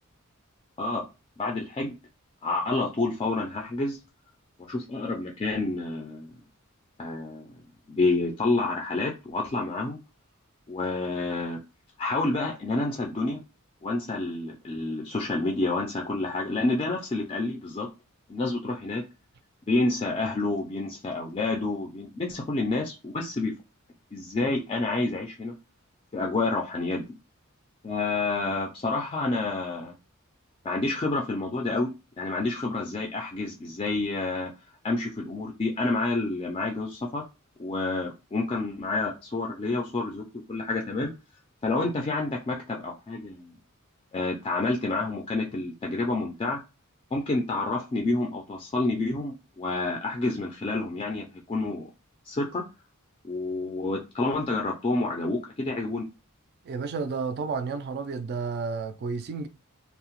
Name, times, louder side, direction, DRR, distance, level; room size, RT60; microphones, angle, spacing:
voice 1, 1.4-2.0 2.4-4.0 4.7-6.3 7.0-7.5 7.9-10.0 10.7-11.6 12.0-13.4 13.8-17.9 18.3-19.1 19.7-23.5 24.1-25.5 26.1-27.1 27.8-30.0 30.6-34.5 34.8-37.2 37.6-41.1 41.6-43.6 44.1-46.6 47.1-51.9 52.3-52.6 53.2-56.1, left 2 dB, 25° left, 0.3 m, -29 dB
voice 2, 56.7-59.5, right 4 dB, 50° right, 0.3 m, -31 dB
2.7 x 2.0 x 2.9 m
head